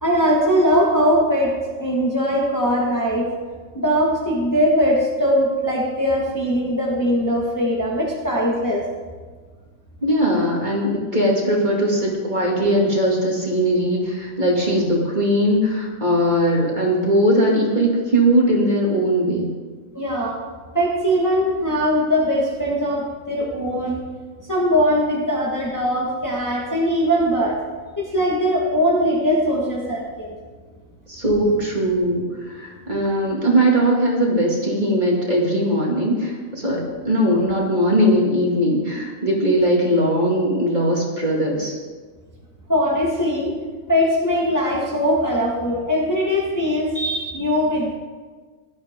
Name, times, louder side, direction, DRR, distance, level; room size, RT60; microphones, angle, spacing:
voice 1, 0.0-1.5 1.8-3.3 3.7-8.8 19.9-20.4 20.7-24.0 24.5-27.6 28.0-30.4 42.7-43.5 43.9-47.9, equal, 15° left, -4 dB, 1.6 m, -20 dB
voice 2, 10.0-19.5 31.1-41.8, equal, 35° right, -3 dB, 2.6 m, -20 dB
16.0 x 12.0 x 3.7 m, 1.5 s
omnidirectional pair, 1.4 m